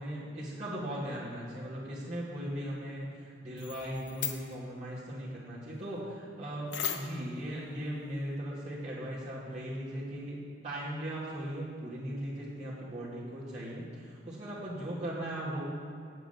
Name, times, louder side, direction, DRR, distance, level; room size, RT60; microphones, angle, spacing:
voice 1, 0.0-15.7, right 1 dB, 40° right, -9 dB, 2.6 m, -38 dB
sound 1, 3.6-4.6 6.7-7.3, left 9 dB, 70° left, 0.8 m, -37 dB
8.0 x 6.5 x 8.1 m, 2.3 s
head